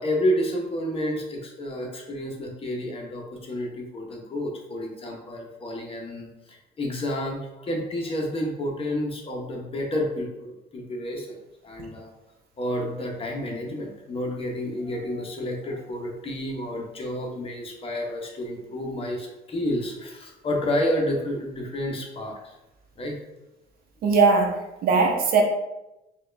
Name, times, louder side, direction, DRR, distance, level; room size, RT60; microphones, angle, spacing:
voice 1, 0.0-11.3 11.6-12.1 12.6-22.6 23.0-23.1, left 1 dB, 35° left, 0 dB, 0.9 m, -30 dB
voice 2, 24.0-25.4, right 4 dB, 65° right, 3 dB, 0.8 m, -20 dB
4.5 x 2.4 x 3.3 m, 0.94 s
cardioid pair, 110°, 17 cm